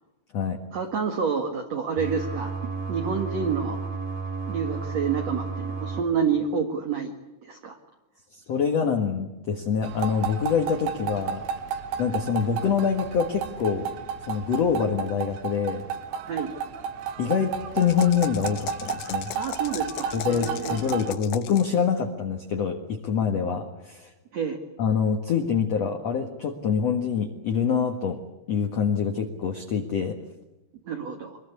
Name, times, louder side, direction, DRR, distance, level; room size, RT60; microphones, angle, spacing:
voice 1, 0.7-2.5 2.9-3.8 4.5-7.1 7.4-7.8 16.3-16.6 19.3-20.8 24.3-24.6 30.8-31.4, right 6 dB, 50° right, 4 dB, 2.3 m, -28 dB
sound 1, 2.0-6.0, right 5 dB, 25° right, 2.4 m, -32 dB
voice 2, 8.3-11.4 12.0-13.9 14.2-15.9 17.2-19.3 20.1-24.1 24.8-28.2 28.5-30.2, left 6 dB, 55° left, 4 dB, 1.9 m, -25 dB
sound 2, 9.8-21.1, right 7 dB, 75° right, 3.7 m, -33 dB
sound 3, 17.8-21.8, left 12 dB, 75° left, 2.9 m, -38 dB
24.5 x 21.5 x 8.3 m, 1.0 s
omnidirectional pair, 5.1 m